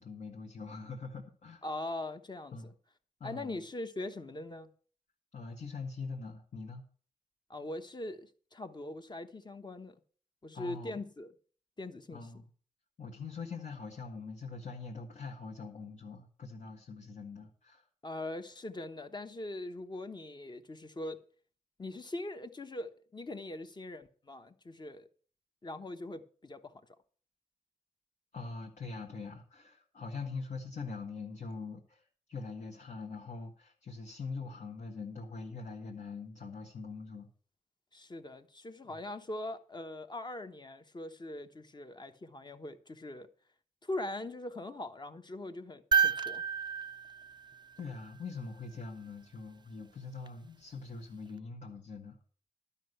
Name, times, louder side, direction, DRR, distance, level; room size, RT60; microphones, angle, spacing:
voice 1, 0.0-1.6 2.5-2.7 3.2-3.6 5.3-6.8 10.5-11.0 12.1-12.4 13.0-17.9 28.3-37.3 47.8-52.2, left 4 dB, 60° left, 1.7 m, -43 dB
voice 2, 1.6-2.7 3.2-4.7 7.5-10.0 10.4-11.3 11.8-12.3 18.0-21.2 21.8-25.1 25.6-26.7 37.9-43.3 43.8-46.4, left 2 dB, 30° left, 1.1 m, -41 dB
sound 1, 45.9-48.2 50.3-50.4, right 6 dB, 30° right, 0.4 m, -31 dB
12.0 x 5.6 x 7.9 m
wide cardioid pair, 95°, 15 cm